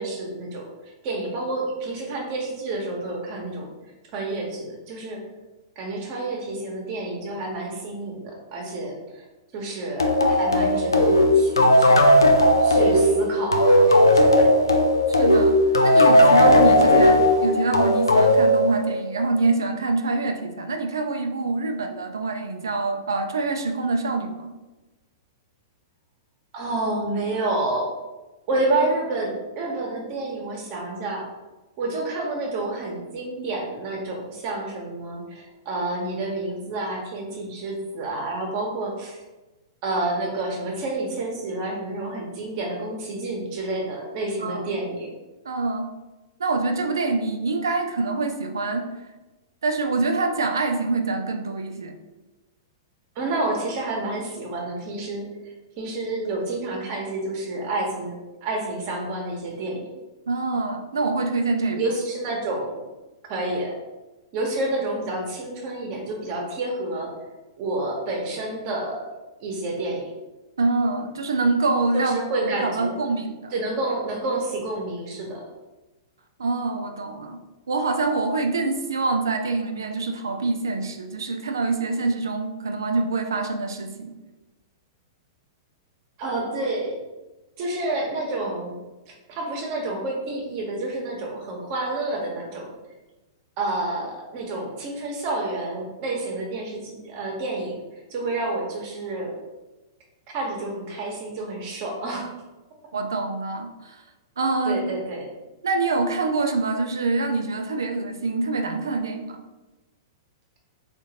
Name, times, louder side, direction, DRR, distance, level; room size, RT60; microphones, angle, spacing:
voice 1, 0.0-3.7 4.1-5.2 5.8-9.2 9.5-12.1 12.6-14.6 26.5-27.9 28.5-31.3 31.8-39.2 39.8-45.1 53.1-59.9 61.8-62.8 63.3-63.8 64.3-67.1 67.6-69.0 69.4-70.1 71.9-73.0 73.5-75.4 86.2-87.0 87.6-88.8 89.3-92.7 93.6-97.8 98.1-99.3 100.3-102.3 104.6-105.2, right 2 dB, 45° right, 0 dB, 1.0 m, -29 dB
sound 1, 10.0-19.2, left 1 dB, 85° left, 0.4 m, -17 dB
voice 2, 15.1-15.6 15.8-24.5 44.4-44.8 45.4-45.9 46.4-48.9 49.6-52.0 60.3-61.8 70.6-73.5 76.4-77.4 77.7-84.1 102.9-104.0 104.4-104.9 105.6-109.4, right 3 dB, 75° right, 6 dB, 0.4 m, -25 dB
3.7 x 2.6 x 2.8 m, 1.1 s
figure-of-eight pair, 105°, 2 cm